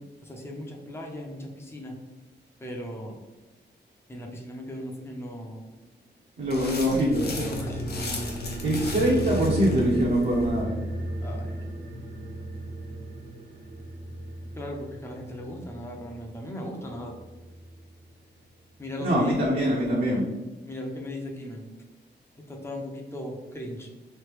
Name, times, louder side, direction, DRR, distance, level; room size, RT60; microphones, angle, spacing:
voice 1, 0.0-2.0 2.6-3.2 4.1-5.6 7.3-8.1 11.2-11.8 14.6-17.1 18.8-19.3 20.6-21.6 22.5-23.9, left 1 dB, 15° left, 0 dB, 0.6 m, -37 dB
voice 2, 6.4-7.3 8.6-10.8 19.0-20.2, equal, 55° right, -5 dB, 0.8 m, -23 dB
sound 1, 6.5-10.6, left 2 dB, 60° left, 0.7 m, -37 dB
sound 2, 6.9-17.8 18.1-18.2, right 1 dB, 80° right, 1.2 m, -36 dB
3.2 x 2.8 x 3.2 m, 1.1 s
wide cardioid pair, 110°, 18 cm